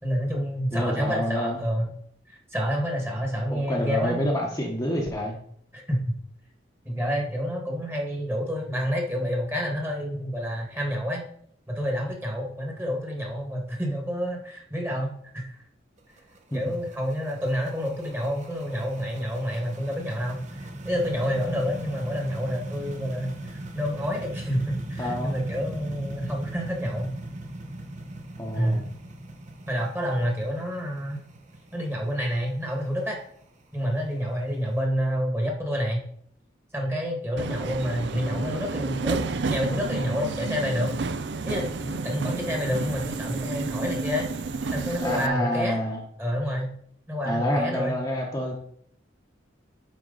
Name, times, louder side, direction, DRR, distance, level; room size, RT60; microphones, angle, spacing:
voice 1, 0.0-1.9 2.5-4.3 5.7-6.1 6.9-11.2 11.7-15.6 16.5-27.1 28.5-28.8 29.7-31.2 31.7-33.2 33.7-36.1 36.7-39.2 39.5-40.9 41.5-44.3 44.7-45.8 46.2-46.7 47.1-48.0, equal, 15° right, 1 dB, 1.7 m, -28 dB
voice 2, 0.7-1.6 3.5-5.4 16.5-16.6 25.0-25.3 28.4-28.8 45.0-46.0 47.2-48.5, equal, 15° left, -2 dB, 1.1 m, -28 dB
sound 1, 16.0-34.7, right 1 dB, 40° right, 1.0 m, -39 dB
Subway metro underground, 37.4-45.3, right 4 dB, 65° right, 0.5 m, -31 dB
11.0 x 4.6 x 4.0 m, 0.64 s
head